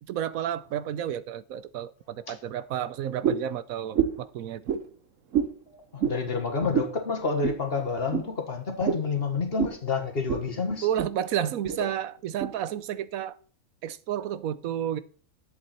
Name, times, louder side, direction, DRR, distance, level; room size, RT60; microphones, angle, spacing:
voice 1, 0.0-4.7 10.8-13.4 13.8-15.0, right 10 dB, 85° right, 1.1 m, -31 dB
sound 1, 3.2-3.5 3.9-4.3 4.7-4.8 5.3-5.5 6.0-6.2 6.7-6.9 7.4-7.6 8.1-8.3 8.8-9.1 9.6-9.8 10.3-10.5 10.8-11.1 11.6-11.8 12.4-12.5, right 8 dB, 65° right, 1.3 m, -27 dB
voice 2, 5.7-10.8, left 4 dB, 45° left, 1.7 m, -29 dB
11.0 x 7.6 x 4.3 m
omnidirectional pair, 1.4 m